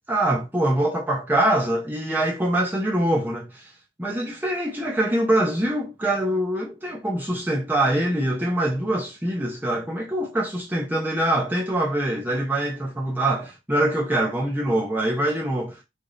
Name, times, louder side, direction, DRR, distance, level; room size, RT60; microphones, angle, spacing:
voice 1, 0.1-3.7 4.0-15.8, right 1 dB, 10° right, 0.7 m, -24 dB
4.9 x 2.6 x 2.5 m
head